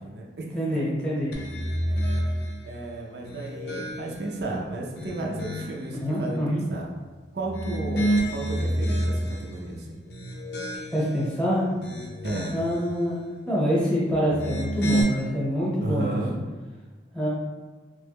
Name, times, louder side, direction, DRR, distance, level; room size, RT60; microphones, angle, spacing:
voice 1, 0.0-0.9 1.9-2.0 2.6-6.9 7.3-10.0 12.2-12.7 15.8-16.5, right 2 dB, 55° right, -1 dB, 0.4 m, -33 dB
voice 2, 0.5-1.3 6.0-6.6 10.9-11.7 12.5-16.2 17.1-17.3, equal, 5° left, -8 dB, 0.8 m, -26 dB
sound 1, 1.3-2.6 3.2-4.3 4.8-5.9 7.4-9.5 10.0-11.2 11.6-12.8 14.2-15.0, equal, 60° left, 0.5 m, -28 dB
3.1 x 2.2 x 3.3 m, 1.4 s
head